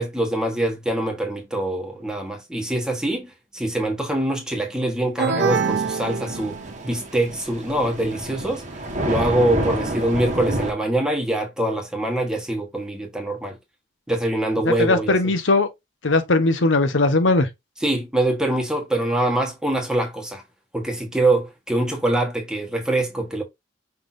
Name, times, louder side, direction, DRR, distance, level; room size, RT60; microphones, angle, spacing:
voice 1, 0.0-6.6 6.8-13.6 14.1-15.2 17.8-20.4 20.7-23.4, right 1 dB, 5° right, 1.3 m, -24 dB
sound 1, 5.2-7.0, right 5 dB, 65° right, 0.6 m, -25 dB
Thunder / Rain, 5.4-10.7, right 1 dB, 40° right, 1.3 m, -29 dB
voice 2, 14.8-15.7 16.0-17.5, left 2 dB, 80° left, 1.0 m, -19 dB
5.8 x 3.4 x 2.6 m
head